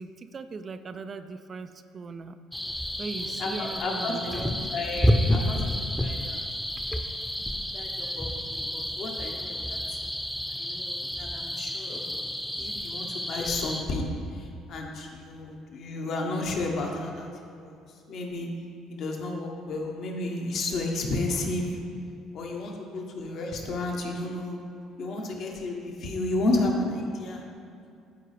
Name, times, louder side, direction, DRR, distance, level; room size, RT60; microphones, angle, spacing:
voice 1, 0.0-2.4 3.0-4.7 7.5-7.6, right 4 dB, 40° right, 9 dB, 0.4 m, -39 dB
sound 1, 2.5-13.8, equal, 5° left, 0.7 m, -30 dB
voice 2, 3.1-6.4 7.7-9.8 10.5-12.2 12.6-17.8 18.1-18.5 18.9-21.8 22.3-24.6 25.0-27.4, left 2 dB, 55° left, 0 dB, 1.1 m, -32 dB
12.0 x 4.6 x 3.3 m, 2.4 s
hypercardioid pair, 55°, 0 cm